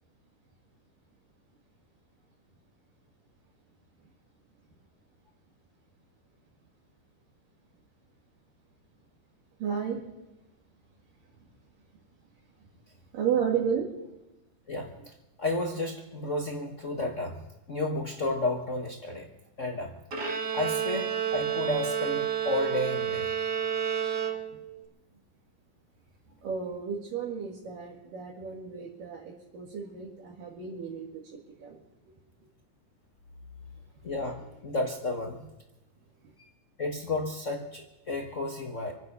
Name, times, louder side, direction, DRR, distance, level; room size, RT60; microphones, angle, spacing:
voice 1, 9.6-10.0 13.1-13.9 24.2-24.6 26.4-31.1 31.6-31.8, right 7 dB, 80° right, -4 dB, 3.8 m, -32 dB
voice 2, 14.7-15.1 15.4-17.4 17.7-19.3 19.6-19.9 20.5-23.3 34.0-35.4 36.4-36.5 36.8-38.9, left 2 dB, 80° left, 0 dB, 0.6 m, -32 dB
Bowed string instrument, 20.1-24.8, right 9 dB, 35° right, 2.2 m, -30 dB
26.5 x 9.5 x 5.5 m, 0.98 s
omnidirectional pair, 3.8 m